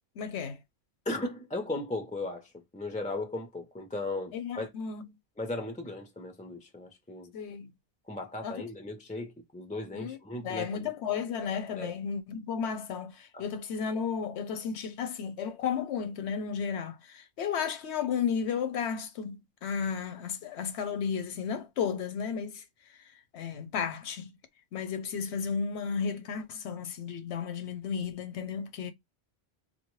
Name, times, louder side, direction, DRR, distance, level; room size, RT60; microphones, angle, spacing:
voice 1, 0.2-0.6 4.3-5.0 7.3-7.7 8.4-8.6 9.9-22.6 23.3-24.3 24.7-28.9, left 6 dB, 90° left, 1.0 m, -33 dB
voice 2, 1.1-4.7 5.4-7.3 8.1-10.9 11.8-11.9 13.3-13.5, left 2 dB, 10° left, 0.4 m, -37 dB
3.8 x 2.2 x 3.0 m
omnidirectional pair, 1.1 m